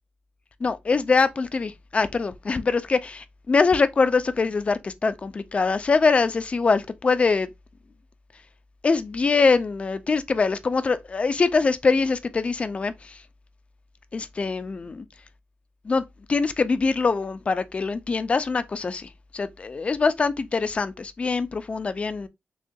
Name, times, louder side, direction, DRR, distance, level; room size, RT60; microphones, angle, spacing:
voice 1, 0.6-7.5 8.8-13.2 14.1-15.1 15.8-16.0 16.3-22.3, left 4 dB, 30° left, 0.4 m, -23 dB
6.2 x 2.3 x 2.6 m
wide cardioid pair, 165°, 4 cm